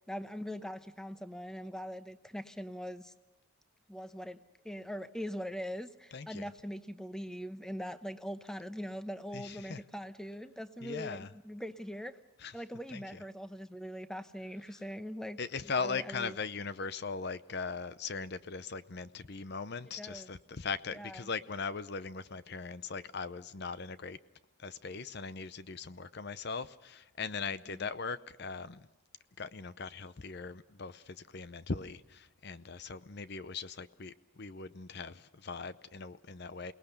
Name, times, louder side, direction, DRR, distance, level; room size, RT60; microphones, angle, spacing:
voice 1, 0.1-3.1 3.9-12.2 12.5-15.4 15.8-16.4 20.0-20.3 20.9-21.3 27.7-27.9, equal, 5° left, 10 dB, 0.8 m, -42 dB
voice 2, 6.1-6.4 9.3-9.8 10.8-11.3 12.4-12.5 12.9-13.0 15.4-24.2 24.6-28.9 29.4-36.7, left 4 dB, 50° left, 14 dB, 0.6 m, -39 dB
28.5 x 19.0 x 6.7 m, 1.1 s
head